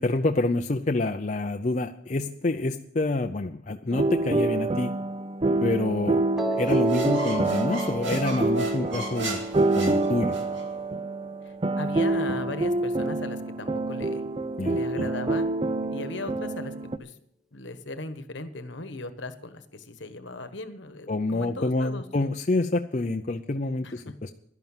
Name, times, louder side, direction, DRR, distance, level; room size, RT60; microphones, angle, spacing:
voice 1, 0.0-4.9 5.6-6.2 6.6-9.4 9.7-10.4 14.6-15.1 21.1-24.3, left 2 dB, 35° left, 5 dB, 0.5 m, -27 dB
sound 1, 3.9-17.0, right 2 dB, 25° right, 0.5 m, -27 dB
Piano, 6.4-12.5, right 3 dB, ahead, 1.1 m, -35 dB
sound 2, 6.6-10.7, right 2 dB, 70° right, 2.5 m, -36 dB
voice 2, 11.4-14.2 14.6-15.4 15.9-17.2 17.5-22.0 23.8-24.1, left 2 dB, 65° left, 10 dB, 1.2 m, -37 dB
12.0 x 11.0 x 7.3 m, 0.69 s
head